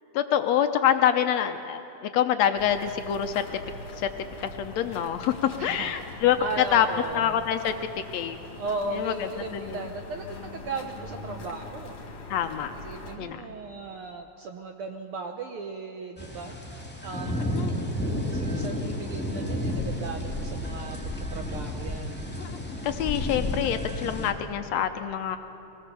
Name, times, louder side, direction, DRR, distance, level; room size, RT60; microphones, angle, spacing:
voice 1, 0.1-3.4 4.0-4.1 4.4-5.3 5.6-6.4 6.7-6.9 7.1-7.7 8.1-8.4 8.9-9.1 9.5-9.8 12.3-12.7 13.2-13.5 17.5-17.7 22.4-22.5 22.8-25.4, left 10 dB, 75° left, 8 dB, 1.8 m, -26 dB
sound 1, 2.6-13.2, left 3 dB, 50° left, 3.3 m, -42 dB
voice 2, 5.6-5.9 6.4-7.4 8.6-12.0 12.7-16.6 17.0-17.7 18.3-21.0 21.3-22.2, right 3 dB, 70° right, 4 dB, 1.4 m, -36 dB
sound 2, 16.2-24.3, left 1 dB, 5° left, 1.7 m, -31 dB
23.5 x 19.0 x 6.9 m, 2.7 s
omnidirectional pair, 3.4 m